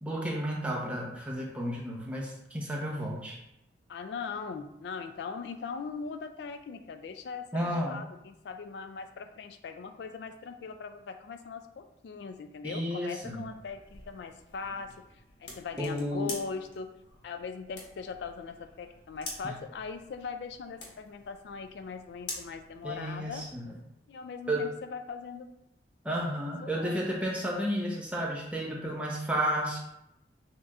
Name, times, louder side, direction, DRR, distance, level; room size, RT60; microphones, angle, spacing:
voice 1, 0.0-3.4 7.5-8.0 12.6-13.4 15.8-16.3 22.8-23.7 24.5-24.6 26.0-29.8, equal, 5° right, -3 dB, 0.7 m, -32 dB
voice 2, 3.9-14.9 15.4-16.9 17.2-23.5 24.1-25.5 26.6-27.0, left 5 dB, 70° left, 8 dB, 0.3 m, -40 dB
sound 1, 13.2-23.5, left 2 dB, 85° left, 1.2 m, -47 dB
6.4 x 2.9 x 2.4 m, 0.85 s
head